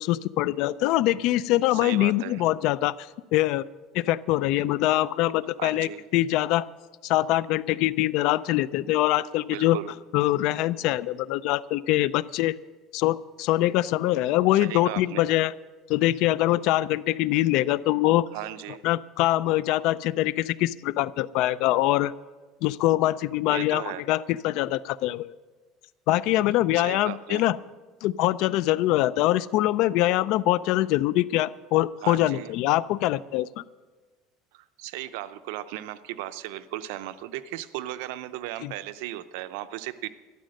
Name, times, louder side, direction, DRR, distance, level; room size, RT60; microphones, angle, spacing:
voice 1, 0.0-3.7 3.9-6.7 7.0-9.8 10.1-12.6 12.9-15.5 15.9-18.3 18.8-22.1 22.6-25.3 26.1-27.6 28.0-33.6 38.6-38.7, left 15 dB, 65° left, 19 dB, 0.4 m, -24 dB
voice 2, 1.7-2.4 5.6-6.0 9.5-9.9 14.5-15.2 18.3-18.8 23.5-24.0 26.7-27.4 32.0-32.5 34.5-40.1, right 14 dB, 85° right, 12 dB, 0.7 m, -36 dB
13.0 x 11.5 x 6.5 m, 1.3 s
cardioid pair, 150°, 0 cm